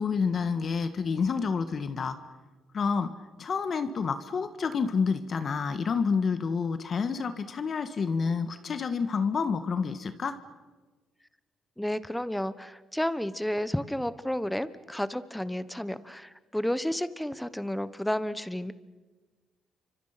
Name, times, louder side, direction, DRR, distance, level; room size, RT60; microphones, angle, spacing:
voice 1, 0.0-2.2 2.7-3.1 3.4-10.4, left 5 dB, 50° left, 10 dB, 1.5 m, -28 dB
voice 2, 11.8-18.7, left 1 dB, 5° left, 15 dB, 1.2 m, -31 dB
29.0 x 25.0 x 5.9 m, 1.3 s
cardioid pair, 90°, 0 cm